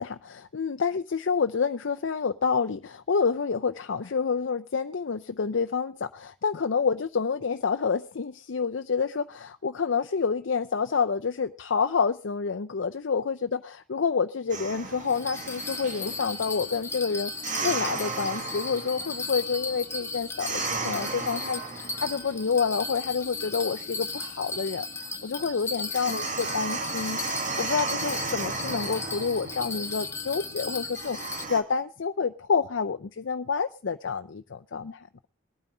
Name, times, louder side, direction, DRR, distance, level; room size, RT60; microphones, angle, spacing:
voice 1, 0.0-31.2 31.5-35.1, left 5 dB, 80° left, 0.6 m, -28 dB
sound 1, 14.5-31.6, right 3 dB, 40° right, 1.7 m, -36 dB
Bell, 15.1-31.5, left 3 dB, 15° left, 1.2 m, -36 dB
21.0 x 9.2 x 3.8 m
head